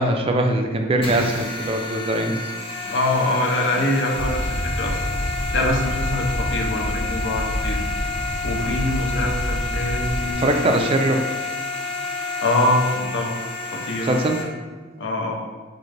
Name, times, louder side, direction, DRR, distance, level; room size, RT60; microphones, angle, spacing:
voice 1, 0.0-2.4 10.2-11.5 14.0-14.9, right 1 dB, 30° right, 4 dB, 0.3 m, -22 dB
sound 1, 1.0-14.4, left 3 dB, 30° left, 0.6 m, -30 dB
voice 2, 2.8-5.0 5.5-7.9 8.4-10.7 12.4-12.9 13.1-13.4 13.7-14.1 15.0-15.3, left 1 dB, 75° left, 0 dB, 0.6 m, -24 dB
sound 2, 4.1-10.3, equal, 10° left, 0.9 m, -28 dB
3.8 x 2.5 x 3.2 m, 1.4 s
head